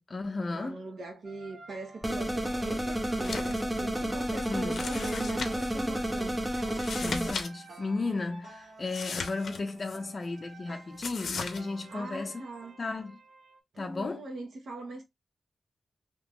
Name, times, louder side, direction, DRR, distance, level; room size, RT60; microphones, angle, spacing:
voice 1, 0.0-0.8 4.5-4.8 7.0-12.4 12.8-13.2 13.8-14.2, left 3 dB, 35° left, 0.5 m, -34 dB
voice 2, 0.5-6.4 11.9-12.8 13.7-15.0, right 2 dB, 85° right, 1.0 m, -41 dB
sound 1, 1.2-13.6, right 2 dB, 65° right, 1.3 m, -51 dB
sound 2, 2.0-7.3, equal, 15° right, 0.7 m, -31 dB
sound 3, 3.1-3.6 3.9-4.0 4.7-5.7 6.7-7.5 7.7-7.8 8.9-10.0 11.0-11.6, left 5 dB, 80° left, 0.5 m, -37 dB
2.9 x 2.4 x 3.5 m
wide cardioid pair, 125°, 0 cm